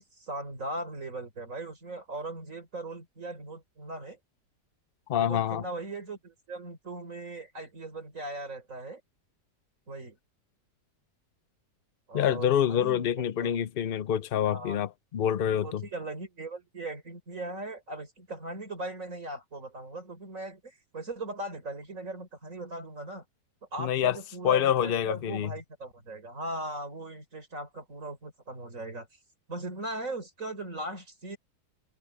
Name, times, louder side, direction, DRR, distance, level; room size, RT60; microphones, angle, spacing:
voice 1, 0.0-4.2 5.1-9.0 9.9-10.2 12.1-13.5 14.5-14.8 15.6-23.2 23.7-29.1 29.5-31.4, right 2 dB, 45° right, 5.3 m, -39 dB
voice 2, 5.1-5.6 12.1-15.8 23.8-24.2 24.4-25.5, left 9 dB, 70° left, 0.5 m, -26 dB
omnidirectional pair, 1.9 m